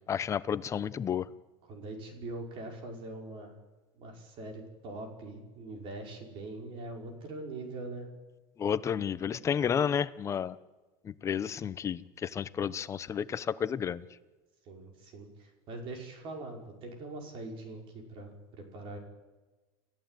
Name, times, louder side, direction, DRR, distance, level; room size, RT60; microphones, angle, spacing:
voice 1, 0.1-1.3 8.6-10.6 11.0-14.0, left 8 dB, 25° left, 15 dB, 0.8 m, -31 dB
voice 2, 1.6-3.5 4.0-8.1 14.7-19.0, right 2 dB, 45° right, 3 dB, 5.3 m, -42 dB
29.0 x 14.5 x 9.2 m, 1.2 s
cardioid pair, 155°, 13 cm